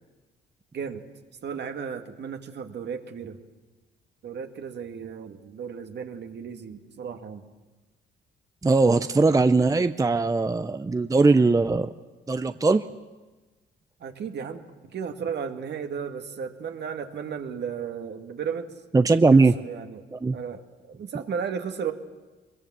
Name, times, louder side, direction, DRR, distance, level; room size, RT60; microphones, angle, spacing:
voice 1, 1.4-3.4 4.2-7.4 14.0-18.7 19.3-20.0 20.3-21.9, right 7 dB, 60° right, 6 dB, 2.1 m, -34 dB
voice 2, 8.6-11.9 12.3-12.8 18.9-19.5 20.1-20.4, right 3 dB, 15° right, 11 dB, 0.7 m, -20 dB
23.0 x 22.0 x 7.6 m, 1.2 s
cardioid pair, 90°, 20 cm